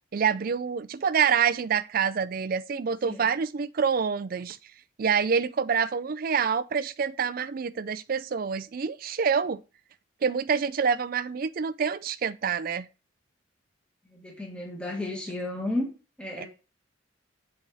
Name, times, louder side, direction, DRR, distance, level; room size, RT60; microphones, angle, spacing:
voice 1, 0.1-4.6 5.0-9.6 10.2-12.9 16.4-16.5, right 6 dB, 45° right, 0.4 m, -27 dB
voice 2, 14.1-15.9 16.2-16.5, left 1 dB, 5° left, 1.7 m, -32 dB
7.6 x 4.7 x 4.0 m
head